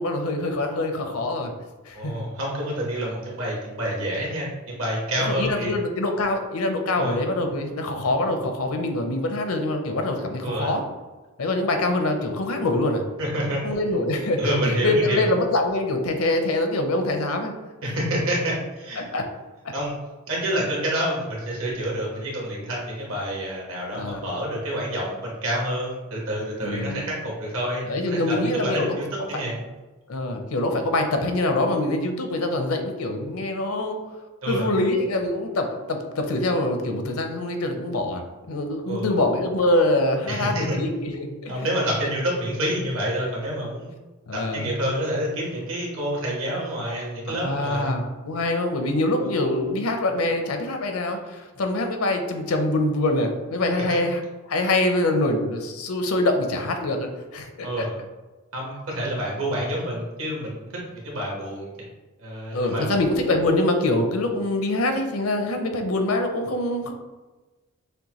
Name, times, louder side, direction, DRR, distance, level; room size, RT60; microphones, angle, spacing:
voice 1, 0.0-1.5 1.9-2.2 5.2-10.8 11.4-13.0 13.6-17.5 19.0-19.2 19.6-19.7 23.9-24.2 26.6-27.0 27.9-29.0 30.1-34.0 34.5-41.6 44.3-44.7 47.3-54.2 54.5-57.9 62.5-66.9, left 2 dB, 75° left, 5 dB, 0.7 m, -24 dB
voice 2, 1.9-5.7 7.0-7.2 10.4-10.7 13.2-13.6 14.4-15.3 17.8-19.0 19.7-19.9 20.3-29.6 34.4-34.7 38.9-39.1 40.3-40.8 41.5-44.0 44.3-47.9 49.2-49.3 53.8-54.0 57.6-58.0 58.5-60.6 60.9-61.7 62.2-62.9, equal, 65° right, -3 dB, 1.3 m, -28 dB
6.5 x 2.2 x 3.0 m, 1.2 s
head